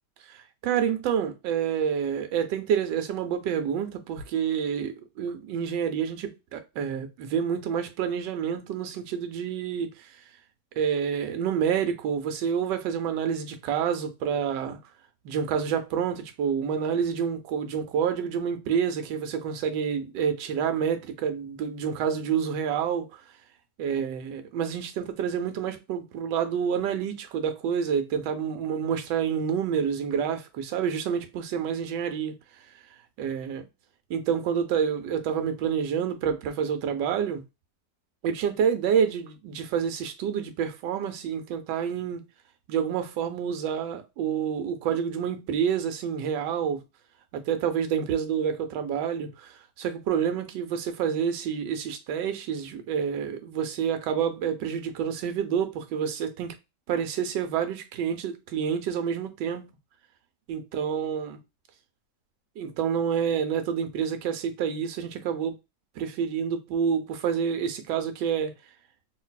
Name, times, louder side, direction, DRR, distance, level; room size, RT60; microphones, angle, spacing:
voice 1, 0.3-10.2 10.8-14.8 15.2-23.2 23.8-32.4 33.2-33.6 34.1-37.4 38.2-42.2 42.7-46.8 47.3-56.5 56.9-59.7 60.5-61.4 62.6-65.6 66.0-68.5, right 7 dB, 90° right, 1.2 m, -28 dB
3.2 x 2.6 x 2.2 m
omnidirectional pair, 1.8 m